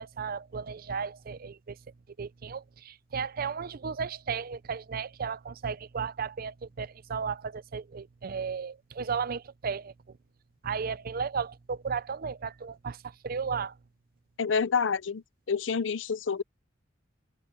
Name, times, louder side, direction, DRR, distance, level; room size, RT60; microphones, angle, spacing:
voice 1, 0.0-1.8 2.2-10.2 10.6-13.8, right 6 dB, 50° right, 0.5 m, -34 dB
voice 2, 14.4-16.4, left 5 dB, 80° left, 0.6 m, -28 dB
head